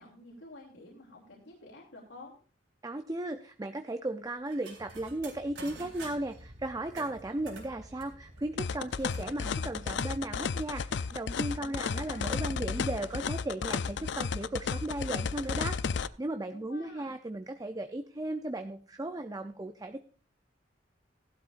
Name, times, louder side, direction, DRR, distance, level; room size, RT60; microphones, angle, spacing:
voice 1, 0.0-2.3 11.6-12.4 16.5-17.1, left 2 dB, 90° left, -3 dB, 3.0 m, -50 dB
voice 2, 2.8-20.0, right 1 dB, 20° right, 8 dB, 0.6 m, -36 dB
sound 1, 4.5-6.4 6.9-9.3 9.7-9.8 10.0-10.6, right 3 dB, 75° right, 3.8 m, -49 dB
sound 2, 4.8-10.3, equal, 35° right, 1.3 m, -52 dB
sound 3, 8.6-16.1, left 5 dB, 65° left, 0.5 m, -33 dB
15.5 x 12.0 x 2.5 m, 0.40 s
head